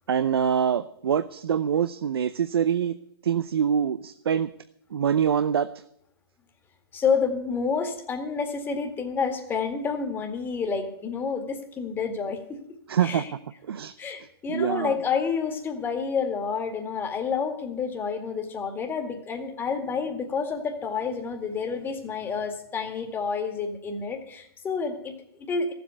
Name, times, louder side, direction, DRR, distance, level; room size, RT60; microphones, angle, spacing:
voice 1, 0.1-2.9 3.2-4.5 4.9-5.7 12.9-13.2 13.6-13.9 14.5-15.0, right 8 dB, 75° right, 12 dB, 0.7 m, -24 dB
voice 2, 6.9-12.6 13.0-13.3 14.0-25.7, left 5 dB, 15° left, 4 dB, 2.1 m, -29 dB
14.5 x 8.0 x 9.2 m, 0.74 s
hypercardioid pair, 130°, 13 cm